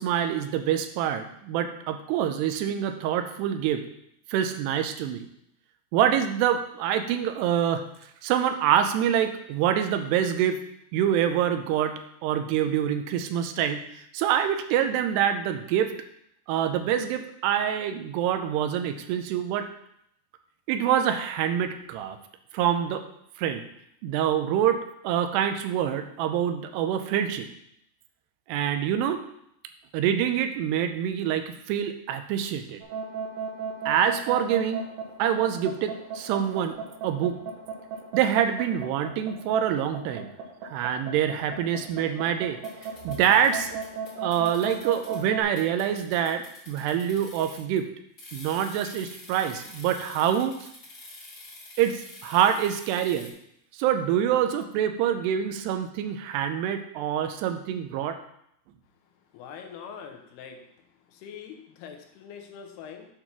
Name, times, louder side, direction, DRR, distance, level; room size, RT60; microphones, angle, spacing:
voice 1, 0.0-3.8 4.3-5.3 5.9-7.8 8.2-10.6 10.9-11.9 12.2-13.8 14.1-15.9 16.5-19.7 20.7-22.2 22.5-23.0 23.4-23.6 24.0-24.8 25.0-27.5 28.5-29.2 29.9-32.8 33.9-34.8 35.2-36.8 37.0-37.4 38.1-40.3 40.7-42.6 43.0-43.8 44.2-47.9 48.3-50.6 51.8-53.3 53.7-58.2, right 9 dB, 85° right, 8 dB, 2.7 m, -25 dB
sound 1, 32.8-45.4, right 6 dB, 70° right, 2.7 m, -35 dB
sound 2, 42.6-43.5 43.8-45.2 45.6-47.7 48.2-53.3, left 2 dB, 35° left, 2.6 m, -47 dB
voice 2, 59.3-60.6 61.1-63.1, left 7 dB, 75° left, 4 dB, 2.8 m, -43 dB
8.1 x 4.2 x 5.9 m, 0.74 s
omnidirectional pair, 4.8 m